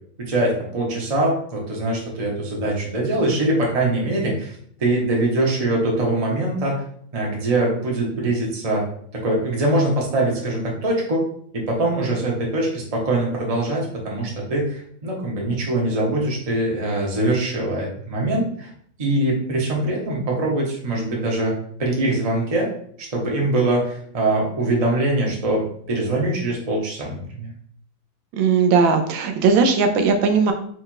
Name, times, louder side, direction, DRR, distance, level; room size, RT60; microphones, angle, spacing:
voice 1, 0.2-6.8 7.1-8.9 9.1-11.2 11.5-18.7 19.0-22.7 23.0-27.5, right 2 dB, 25° right, -2 dB, 0.8 m, -23 dB
voice 2, 28.3-30.5, right 5 dB, 80° right, 6 dB, 1.3 m, -18 dB
4.4 x 2.5 x 4.5 m, 0.62 s
omnidirectional pair, 2.2 m